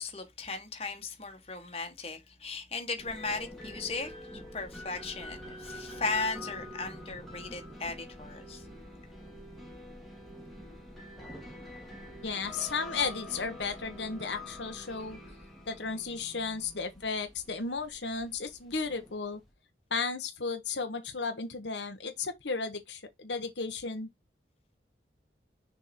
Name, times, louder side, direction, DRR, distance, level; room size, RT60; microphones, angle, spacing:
voice 1, 0.0-4.1 4.5-8.7, left 4 dB, 35° left, 1.5 m, -36 dB
sound 1, 3.0-19.5, left 1 dB, ahead, 1.8 m, -46 dB
voice 2, 12.2-15.2 15.7-19.4 19.9-24.1, left 4 dB, 85° left, 1.2 m, -34 dB
6.5 x 3.7 x 4.4 m
head